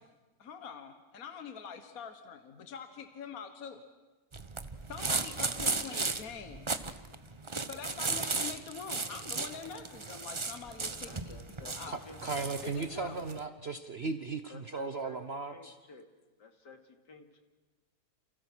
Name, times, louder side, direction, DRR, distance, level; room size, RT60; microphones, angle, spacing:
voice 1, 0.4-3.8 4.9-6.9 7.7-12.0 12.6-13.2, left 6 dB, 60° left, 8 dB, 1.9 m, -45 dB
sound 1, 4.3-13.4, right 3 dB, 25° right, 0.8 m, -36 dB
voice 2, 11.0-12.6 14.5-15.2 15.5-16.1 16.4-17.4, left 4 dB, 90° left, 5 dB, 3.2 m, -53 dB
voice 3, 11.9-15.8, right 4 dB, 45° right, 9 dB, 1.1 m, -37 dB
30.0 x 29.0 x 6.3 m, 1.2 s
omnidirectional pair, 1.8 m